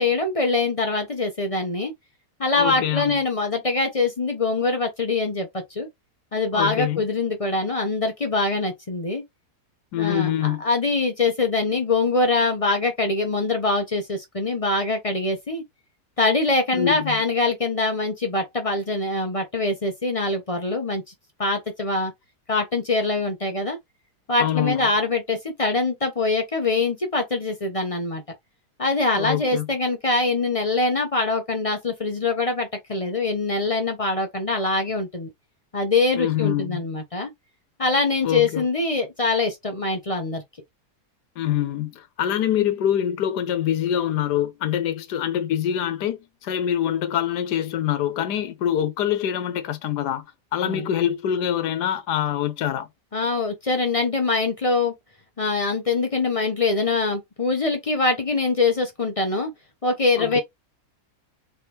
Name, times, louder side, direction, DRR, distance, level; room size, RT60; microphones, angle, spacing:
voice 1, 0.0-1.9 2.4-5.9 6.3-9.2 10.0-15.6 16.2-21.0 21.4-22.1 22.5-23.8 24.3-28.2 28.8-35.3 35.7-37.3 37.8-40.4 50.6-50.9 53.1-54.9 55.4-59.5 59.8-60.4, left 3 dB, 35° left, 0.6 m, -23 dB
voice 2, 2.6-3.1 6.5-7.0 9.9-10.6 16.7-17.2 24.4-24.9 29.1-29.7 36.2-36.8 38.2-38.6 41.4-50.2 50.5-52.9 60.2-60.4, left 10 dB, 85° left, 1.3 m, -25 dB
4.0 x 2.9 x 3.4 m
omnidirectional pair, 1.7 m